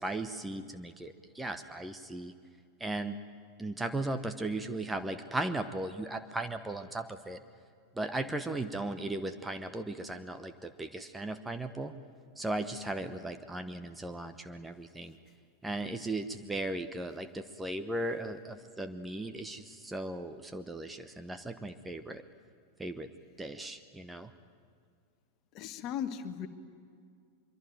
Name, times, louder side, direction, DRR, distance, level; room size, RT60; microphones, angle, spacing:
voice 1, 0.0-2.3 2.8-3.1 3.6-7.4 8.0-11.9 12.4-15.2 15.6-22.2 22.8-23.1 23.4-24.3, right 2 dB, 10° right, 8 dB, 1.1 m, -37 dB
voice 2, 25.5-26.5, left 9 dB, 40° left, 10 dB, 1.6 m, -37 dB
24.5 x 24.0 x 9.2 m, 2.2 s
figure-of-eight pair, 90°, 0 cm